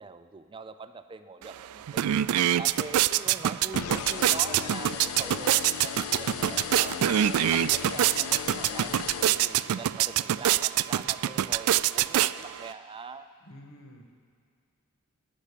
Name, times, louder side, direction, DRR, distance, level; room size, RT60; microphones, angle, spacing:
voice 1, 0.0-2.2 2.6-7.2 7.5-13.3, right 4 dB, 25° right, 10 dB, 0.4 m, -43 dB
sound 1, 1.4-1.5 1.8-12.7, right 12 dB, 85° right, 0.3 m, -25 dB
sound 2, 3.7-9.9, left 10 dB, 90° left, 0.3 m, -37 dB
voice 2, 13.4-14.0, left 1 dB, 75° left, 3 dB, 1.7 m, -49 dB
19.5 x 6.8 x 8.4 m, 2.1 s
head